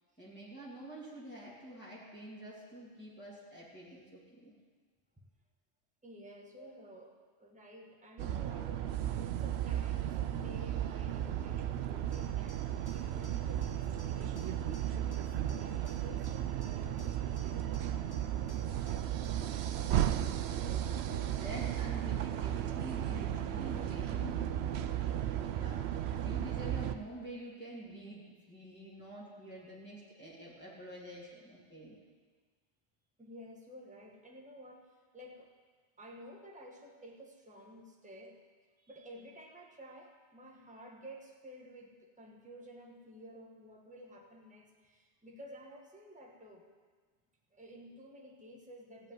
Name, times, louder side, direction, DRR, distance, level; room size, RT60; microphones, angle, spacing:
voice 1, 0.2-4.6 6.6-6.7 20.6-32.0, right 1 dB, 10° left, -7 dB, 2.6 m, -48 dB
voice 2, 6.0-7.1 7.4-12.6 12.9-18.9 19.7-20.0 20.5-21.2 33.2-35.5 36.0-38.4 38.9-46.7 47.5-49.1, equal, 5° right, 0 dB, 1.3 m, -53 dB
sound 1, 8.2-27.0, right 11 dB, 70° right, 0.8 m, -35 dB
sound 2, 12.1-20.3, right 3 dB, 50° left, 2.1 m, -57 dB
15.0 x 5.3 x 9.2 m, 1.5 s
omnidirectional pair, 1.2 m